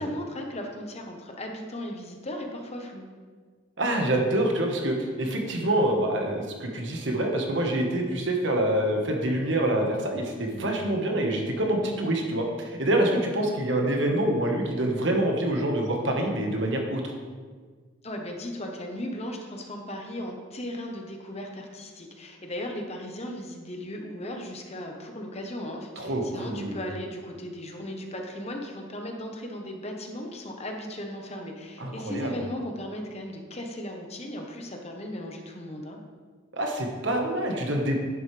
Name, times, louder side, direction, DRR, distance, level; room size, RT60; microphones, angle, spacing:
voice 1, 0.0-3.1 18.0-36.0, left 1 dB, 30° left, 2 dB, 1.0 m, -36 dB
voice 2, 3.8-17.0 26.0-26.8 31.8-32.3 36.5-37.9, right 1 dB, 65° right, 2 dB, 1.4 m, -26 dB
10.5 x 7.9 x 3.4 m, 1.5 s
head